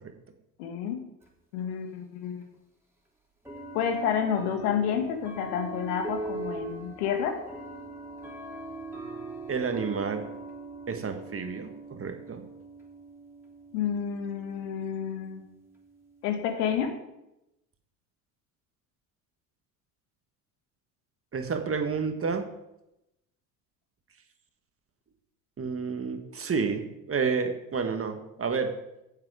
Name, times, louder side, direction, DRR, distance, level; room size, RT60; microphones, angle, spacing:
voice 1, 0.6-1.0 1.5-2.4 3.7-7.4 13.7-15.4 16.2-17.0, left 8 dB, 80° left, 5 dB, 1.9 m, -29 dB
sound 1, 1.2-1.3 2.4-2.5 3.4-16.7, right 2 dB, 5° right, 3.5 m, -42 dB
voice 2, 9.5-10.2 10.9-12.4 21.3-22.4 25.6-28.7, right 5 dB, 30° right, 6 dB, 1.6 m, -30 dB
10.0 x 7.5 x 5.0 m, 0.90 s
hypercardioid pair, 70°, 46 cm